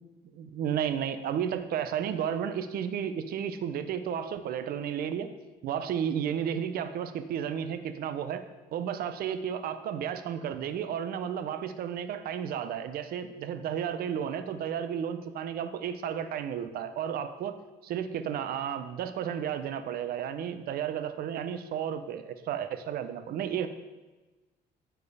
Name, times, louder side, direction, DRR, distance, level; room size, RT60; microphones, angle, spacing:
voice 1, 0.3-5.3 5.6-8.4 8.7-17.6 17.8-23.7, right 8 dB, 60° right, 10 dB, 0.6 m, -33 dB
8.6 x 4.5 x 4.8 m, 1.2 s
cardioid pair, 110°, 17 cm